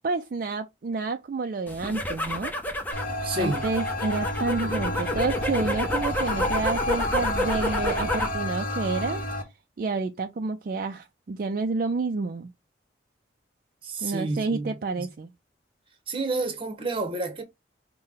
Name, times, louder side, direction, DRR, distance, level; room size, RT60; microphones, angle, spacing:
voice 1, 0.0-2.5 3.4-9.2 9.8-12.5 14.0-15.3, right 3 dB, 50° right, 0.3 m, -29 dB
sound 1, 1.7-8.4 8.8-9.3, left 1 dB, 10° left, 0.7 m, -30 dB
sound 2, 2.9-9.4, left 1 dB, 45° left, 1.0 m, -31 dB
voice 2, 3.2-3.7 13.8-15.1 16.1-17.4, right 2 dB, 30° right, 0.9 m, -30 dB
5.5 x 2.1 x 3.6 m
head